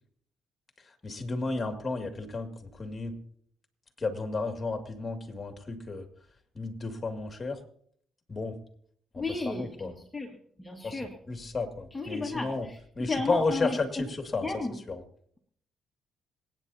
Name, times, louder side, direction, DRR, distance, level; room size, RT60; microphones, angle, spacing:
voice 1, 0.8-3.2 4.0-6.1 6.5-7.6 8.3-8.6 9.1-9.9 10.8-11.0 11.3-12.7 13.0-14.5 14.9-15.0, left 3 dB, 30° left, 5 dB, 2.1 m, -32 dB
voice 2, 9.1-11.1 11.9-13.8 14.4-14.7, left 3 dB, 15° left, 1 dB, 1.7 m, -34 dB
26.5 x 9.0 x 2.8 m, 0.63 s
cardioid pair, 90°, 0 cm